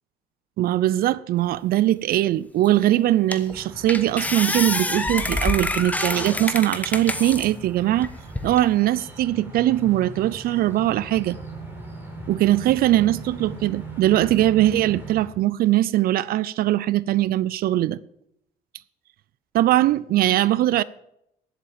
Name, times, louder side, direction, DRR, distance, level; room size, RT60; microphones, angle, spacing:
voice 1, 0.6-8.1 8.4-11.4 12.3-18.0 19.5-20.8, right 14 dB, 65° right, 0.4 m, -21 dB
sound 1, 2.7-2.8 3.3-3.6 3.9-7.5 8.0-8.7, left 2 dB, 10° left, 1.1 m, -27 dB
sound 2, 3.5-15.3, right 2 dB, 10° right, 3.8 m, -39 dB
11.0 x 7.8 x 7.2 m
cardioid pair, 110°, 17 cm